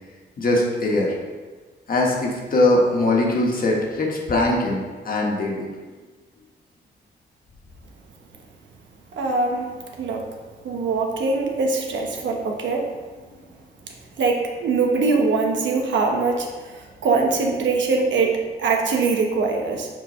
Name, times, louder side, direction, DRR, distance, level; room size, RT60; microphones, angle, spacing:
voice 1, 0.4-1.1 1.9-5.7, left 2 dB, 50° left, -1 dB, 1.4 m, -21 dB
voice 2, 9.2-9.7 10.0-10.3 10.6-12.9 14.2-16.5 17.0-19.9, right 4 dB, 90° right, 1 dB, 1.1 m, -22 dB
7.7 x 4.8 x 3.1 m, 1.3 s
wide cardioid pair, 125°, 19 cm